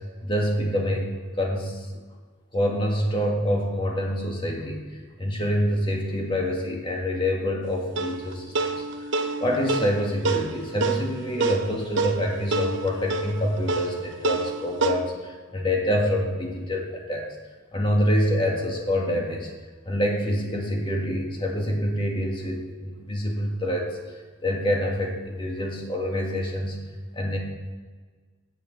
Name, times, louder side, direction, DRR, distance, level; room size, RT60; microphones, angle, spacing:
voice 1, 0.2-1.1 1.4-1.9 2.5-4.8 5.2-9.1 9.4-17.3 17.7-19.5 19.9-26.8 27.1-27.4, equal, 25° left, -1 dB, 1.8 m, -26 dB
sound 1, 8.0-14.9, right 3 dB, 65° right, 0.8 m, -28 dB
8.8 x 7.1 x 7.6 m, 1.5 s
head